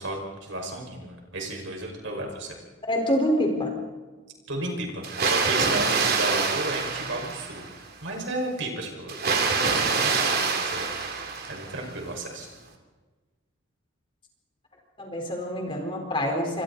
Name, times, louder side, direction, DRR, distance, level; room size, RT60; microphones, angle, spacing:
voice 1, 0.0-2.6 4.5-7.7 8.0-9.1 9.6-10.9 11.5-12.5, right 2 dB, 65° right, 1 dB, 5.6 m, -33 dB
voice 2, 2.9-3.8 5.7-5.8 15.0-16.6, equal, 25° left, 1 dB, 4.5 m, -26 dB
Water, 5.0-7.8 9.1-11.9, right 4 dB, 50° right, 3.1 m, -26 dB
29.5 x 25.5 x 4.2 m, 1.3 s
head